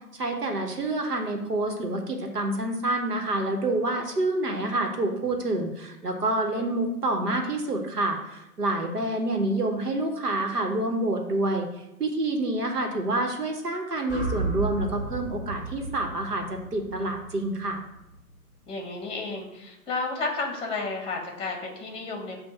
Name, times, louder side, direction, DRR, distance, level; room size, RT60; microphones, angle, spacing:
voice 1, 0.1-11.7 12.0-17.8, right 2 dB, 85° right, 2 dB, 1.3 m, -27 dB
sound 1, 14.1-18.3, right 3 dB, 5° right, 1.8 m, -34 dB
voice 2, 18.7-22.4, left 3 dB, 10° left, 2 dB, 1.2 m, -32 dB
7.4 x 2.6 x 5.8 m, 0.91 s
figure-of-eight pair, 120°, 45 cm